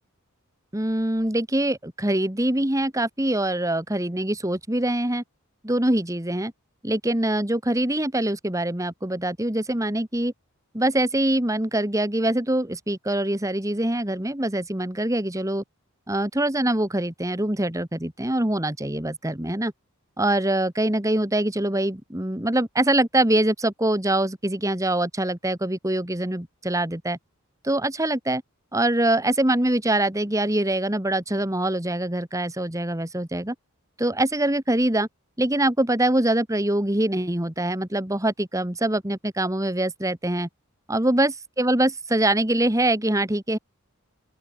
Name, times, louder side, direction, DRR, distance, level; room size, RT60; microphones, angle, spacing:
voice 1, 0.7-5.2 5.6-6.5 6.8-10.3 10.7-15.6 16.1-19.7 20.2-27.2 27.6-28.4 28.7-33.6 34.0-35.1 35.4-40.5 40.9-43.6, right 1 dB, 15° right, 1.7 m, -24 dB
open air
head